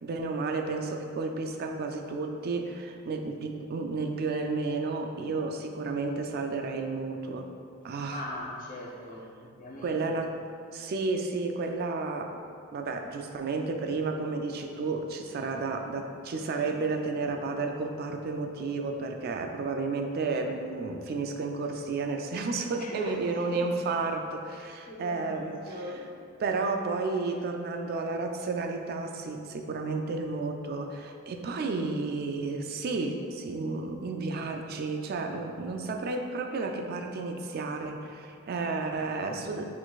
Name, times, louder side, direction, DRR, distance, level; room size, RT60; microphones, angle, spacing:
voice 1, 0.0-7.5 7.8-8.2 9.8-10.3 10.7-12.4 12.7-25.6 26.4-39.6, right 3 dB, 50° right, 4 dB, 0.3 m, -32 dB
voice 2, 7.9-10.0 22.8-23.7 24.5-26.1, equal, 40° left, -3 dB, 0.7 m, -40 dB
4.7 x 3.9 x 2.4 m, 2.3 s
head